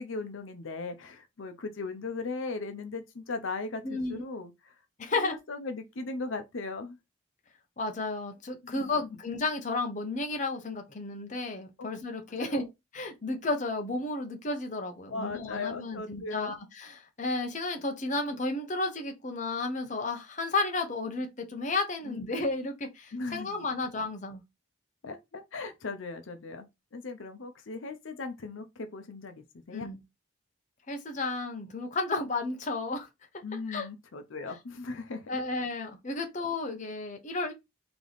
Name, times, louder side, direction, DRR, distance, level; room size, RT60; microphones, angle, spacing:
voice 1, 0.0-4.8 5.1-7.0 8.7-9.1 11.8-11.9 12.4-12.6 15.1-16.6 22.0-22.4 23.1-23.6 25.0-26.7 26.9-29.9 33.4-35.3, left 3 dB, 80° left, 0.7 m, -38 dB
voice 2, 3.8-4.2 5.0-5.4 7.8-12.6 12.9-24.4 29.7-30.0 30.9-33.1 33.7-33.9 35.3-37.5, left 2 dB, 40° left, 0.8 m, -32 dB
3.4 x 2.9 x 4.0 m
head